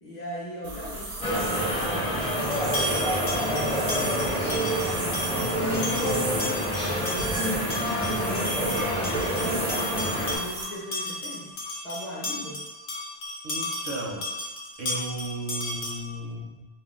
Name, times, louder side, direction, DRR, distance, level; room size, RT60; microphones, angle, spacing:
voice 1, 0.0-3.1 3.5-4.1 5.6-11.5 11.8-12.6, equal, 45° left, -5 dB, 0.7 m, -38 dB
sound 1, 0.6-10.6, right 2 dB, 90° right, 1.0 m, -35 dB
sound 2, 1.2-10.4, equal, 10° left, 0.4 m, -27 dB
sound 3, 2.5-16.2, left 2 dB, 75° left, 0.9 m, -35 dB
voice 2, 3.9-4.4 5.3-6.3 13.4-14.3 14.8-16.7, right 1 dB, 65° right, -2 dB, 0.7 m, -35 dB
2.5 x 2.1 x 3.5 m, 1.2 s
omnidirectional pair, 1.1 m